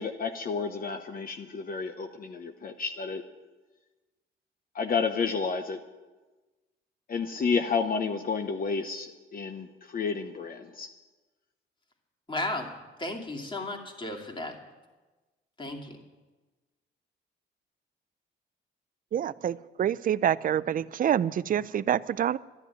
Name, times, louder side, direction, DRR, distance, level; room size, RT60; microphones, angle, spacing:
voice 1, 0.0-3.2 4.7-5.8 7.1-10.9, left 5 dB, 45° left, 6 dB, 0.9 m, -31 dB
voice 2, 12.3-12.7 13.0-14.6 15.6-16.0, left 2 dB, 25° left, 2 dB, 2.5 m, -34 dB
voice 3, 19.1-22.4, right 10 dB, 45° right, 18 dB, 0.5 m, -27 dB
12.0 x 10.5 x 9.4 m, 1.2 s
cardioid pair, 90°, 20 cm